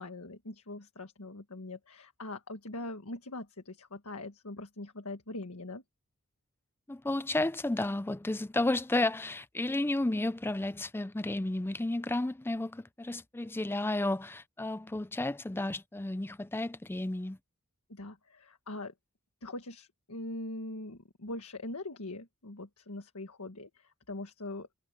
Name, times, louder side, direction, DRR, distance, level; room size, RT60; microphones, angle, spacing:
voice 1, 0.0-5.8 17.9-18.9 19.4-24.7, left 2 dB, 80° left, 1.7 m, -42 dB
voice 2, 6.9-17.4, left 2 dB, 10° left, 0.4 m, -32 dB
head